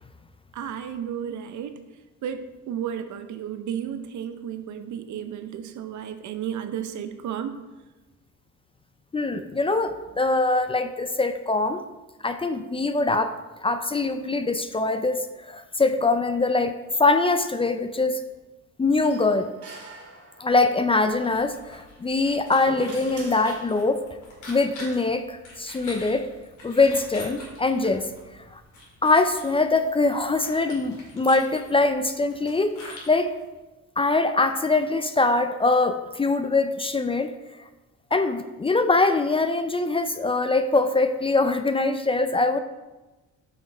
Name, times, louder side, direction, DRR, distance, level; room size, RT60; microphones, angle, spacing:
voice 1, 0.5-1.8 2.2-7.6, right 9 dB, 70° right, 9 dB, 0.7 m, -33 dB
voice 2, 9.1-11.8 12.2-13.3 13.6-16.7 17.0-18.2 18.8-19.5 20.4-24.0 24.5-26.3 26.6-28.1 28.5-28.6 29.0-33.3 34.0-37.3 38.1-42.6, left 3 dB, 20° left, 9 dB, 0.4 m, -23 dB
sound 1, 19.0-20.8 22.1-24.2, right 3 dB, 50° right, 2.0 m, -44 dB
sound 2, 21.0-33.4, left 1 dB, 75° left, 2.3 m, -46 dB
5.7 x 5.6 x 4.2 m, 1.1 s
cardioid pair, 90°, 30 cm